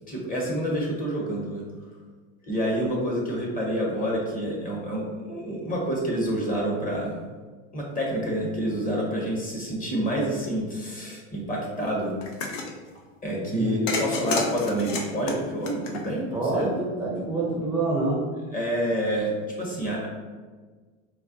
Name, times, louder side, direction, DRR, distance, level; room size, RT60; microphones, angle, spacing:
voice 1, 0.1-1.9 2.4-7.3 7.7-12.1 13.2-16.7 18.5-20.1, equal, 20° left, -2 dB, 0.9 m, -28 dB
sound 1, 12.2-12.7 13.9-16.4, left 3 dB, 70° left, 0.7 m, -30 dB
voice 2, 16.3-18.2, right 3 dB, 5° right, -7 dB, 0.6 m, -27 dB
4.0 x 2.2 x 2.6 m, 1.4 s
hypercardioid pair, 105°, 40 cm